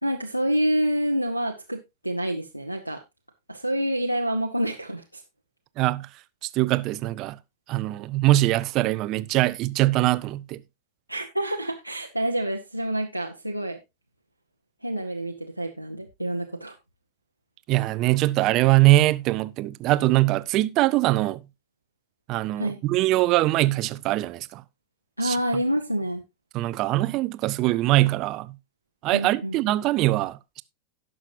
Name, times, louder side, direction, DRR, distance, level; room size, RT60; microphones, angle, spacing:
voice 1, 0.0-3.0 3.5-5.2 11.1-13.8 14.8-16.7 22.6-22.8 25.2-26.2 29.1-29.6, right 1 dB, 90° right, 0.9 m, -27 dB
voice 2, 5.8-6.1 6.5-7.4 7.7-10.6 17.7-21.4 22.3-24.6 25.2-25.4 26.5-28.5 29.0-30.6, right 17 dB, 40° right, 0.5 m, -22 dB
17.5 x 6.2 x 2.7 m
figure-of-eight pair, 90°, 0 cm